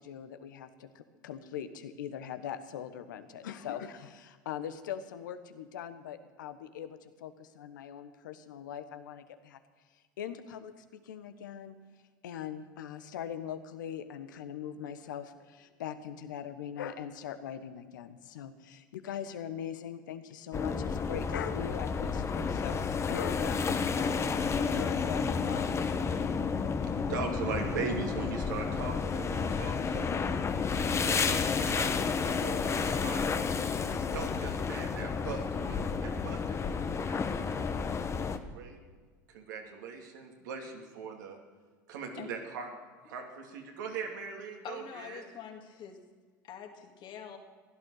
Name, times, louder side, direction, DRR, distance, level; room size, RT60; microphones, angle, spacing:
voice 1, 0.0-9.6 10.2-11.7 12.2-25.7, left 9 dB, 80° left, 10 dB, 1.2 m, -41 dB
sound 1, 20.5-38.4, left 5 dB, 25° left, 1.1 m, -31 dB
voice 2, 27.0-30.2 31.0-33.3 34.1-38.3 38.5-38.8 39.3-41.4 41.9-42.7 43.0-45.2, right 5 dB, 75° right, 2 dB, 2.6 m, -40 dB
voice 3, 44.6-46.0 46.4-47.4, left 8 dB, 50° left, 4 dB, 2.3 m, -45 dB
16.0 x 11.5 x 6.5 m, 1.5 s
hypercardioid pair, 80°, 10 cm